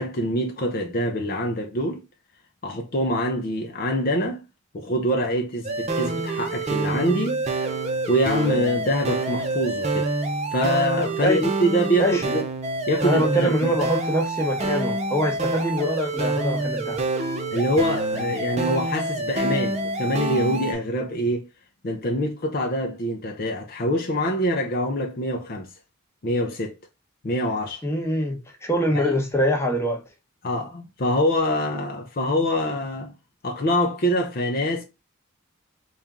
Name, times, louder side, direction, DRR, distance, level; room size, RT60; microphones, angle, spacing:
voice 1, 0.0-2.0 2.6-4.5 4.7-7.4 8.1-10.1 10.5-12.5 12.9-13.8 17.5-21.5 21.8-25.7 26.2-26.7 27.2-27.8 28.9-29.2 30.4-33.1 33.4-34.8, equal, 45° left, 0.6 m, -25 dB
sound 1, 5.6-20.7, right 2 dB, 30° right, 0.6 m, -27 dB
voice 2, 13.0-17.0 27.8-30.0, equal, 15° left, 0.8 m, -24 dB
4.2 x 2.4 x 3.5 m
head